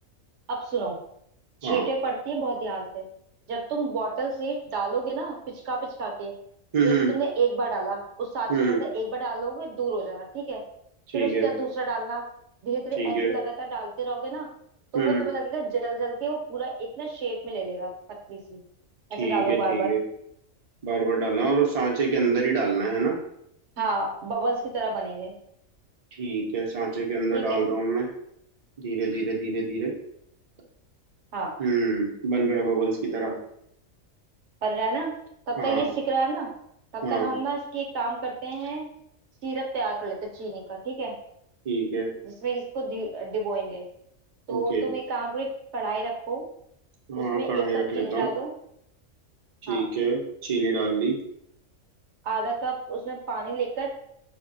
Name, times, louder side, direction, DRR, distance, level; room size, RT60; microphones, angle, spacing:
voice 1, 0.5-1.0 1.6-3.1 3.5-6.3 6.8-10.6 11.1-12.2 12.6-14.5 14.9-17.9 18.3-18.6 19.1-19.9 23.8-25.3 27.3-27.6 31.3-31.5 34.6-35.1 35.5-36.5 36.9-38.9 39.4-41.1 42.2-43.8 44.5-46.5 47.2-48.5 49.7-49.8 52.2-53.9, right 4 dB, 65° right, 1 dB, 0.9 m, -30 dB
voice 2, 6.7-7.1 8.5-8.8 11.1-11.5 13.0-13.3 14.9-15.2 19.2-20.0 20.8-23.2 26.2-28.0 28.8-29.9 31.6-33.3 35.6-35.9 37.0-37.3 41.6-42.1 44.5-44.9 47.1-48.3 49.6-51.2, right 4 dB, 45° right, -1 dB, 0.5 m, -26 dB
5.2 x 2.1 x 2.5 m, 0.73 s
omnidirectional pair, 1.4 m